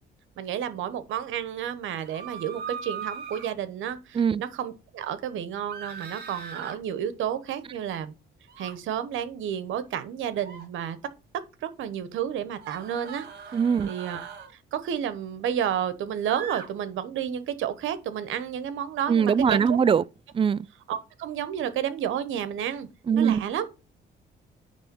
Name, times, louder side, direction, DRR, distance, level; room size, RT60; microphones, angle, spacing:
voice 1, 0.4-8.1 8.6-11.0 11.6-13.3 13.8-14.3 14.7-19.8 20.9-22.9 23.2-23.6, right 9 dB, 80° right, 1.1 m, -31 dB
sound 1, 2.0-3.5 5.7-6.8 8.5-8.7 10.3-10.7 12.6-14.5 16.3-16.7, right 6 dB, 55° right, 2.1 m, -39 dB
voice 2, 13.5-13.9 19.1-20.0 20.3-20.6 23.1-23.4, right 7 dB, 25° right, 0.4 m, -21 dB
10.0 x 3.4 x 5.3 m
cardioid pair, 90°, 20 cm